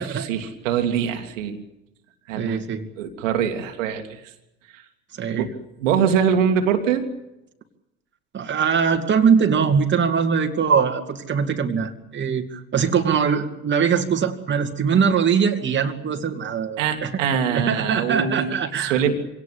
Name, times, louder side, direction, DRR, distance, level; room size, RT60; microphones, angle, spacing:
voice 1, 0.0-1.6 2.3-2.6 3.0-4.2 4.7-4.8 5.3-5.5 5.8-7.1 16.8-19.1, right 8 dB, 70° right, 5 dB, 2.4 m, -23 dB
voice 2, 2.4-2.9 5.1-5.5 8.3-17.2 17.5-19.1, right 6 dB, 30° right, 4 dB, 2.5 m, -22 dB
25.0 x 18.0 x 8.4 m, 0.90 s
figure-of-eight pair, 70°, 40 cm